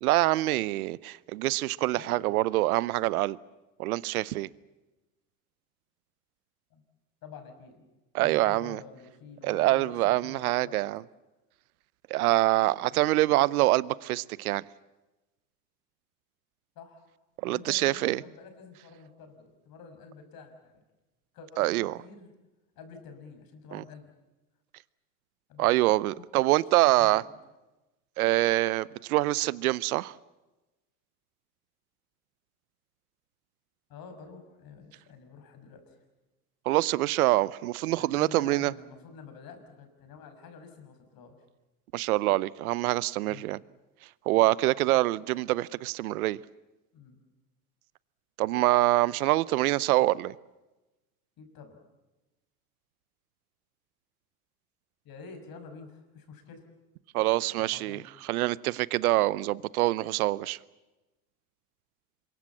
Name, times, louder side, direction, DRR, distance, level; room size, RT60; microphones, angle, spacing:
voice 1, 0.0-3.4 3.8-4.5 8.1-8.8 9.4-11.0 12.1-14.6 17.4-18.2 21.6-22.0 23.7-23.8 25.6-27.2 28.2-30.1 36.7-38.7 41.9-43.6 44.3-46.4 48.4-50.3 57.1-60.6, right 17 dB, 85° right, 0.8 m, -25 dB
voice 2, 2.0-2.4 6.7-6.8 7.2-7.9 8.2-10.8 12.9-13.0 16.8-17.1 17.4-20.7 21.3-22.3 22.8-24.1 25.5-25.8 26.8-27.2 33.9-36.0 37.9-41.4 43.3-43.5 46.9-47.2 51.4-51.8 55.0-56.7 57.6-58.0, left 5 dB, 55° left, 6.1 m, -48 dB
27.0 x 23.0 x 7.3 m
hypercardioid pair, 85°, 42 cm